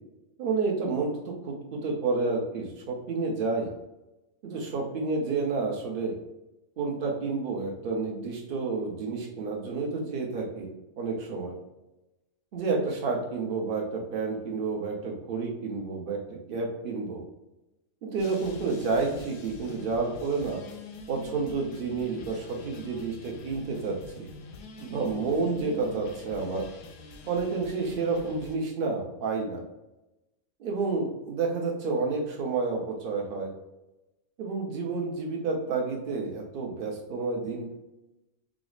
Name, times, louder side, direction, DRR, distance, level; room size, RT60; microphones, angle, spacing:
voice 1, 0.4-3.7 4.4-6.1 6.8-10.7 11.0-11.5 12.5-16.2 16.5-17.2 18.0-20.6 21.1-24.3 24.8-26.6 27.3-29.6 30.6-33.5 34.4-37.7, right 4 dB, 50° right, -1 dB, 0.8 m, -30 dB
sound 1, 18.2-28.6, left 4 dB, 85° left, 0.9 m, -45 dB
4.9 x 2.0 x 2.4 m, 0.97 s
omnidirectional pair, 1.3 m